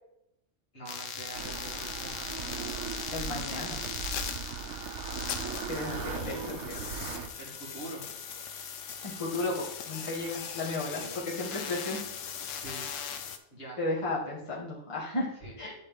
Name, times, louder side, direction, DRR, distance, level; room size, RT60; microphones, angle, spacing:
voice 1, 0.7-2.3 5.8-6.6 7.4-8.0 10.8-11.2 12.5-12.9 13.5-13.8 15.4-15.6, right 1 dB, 55° left, -4 dB, 2.3 m, -44 dB
sound 1, 0.9-13.4, left 7 dB, 85° left, 1.0 m, -39 dB
sound 2, 1.3-7.3, right 6 dB, 75° right, 1.0 m, -38 dB
voice 2, 3.1-3.8 5.7-6.6 9.0-12.0 13.8-15.3 15.6-15.7, left 2 dB, 25° left, -6 dB, 1.4 m, -34 dB
9.9 x 4.0 x 3.5 m, 0.82 s
omnidirectional pair, 1.3 m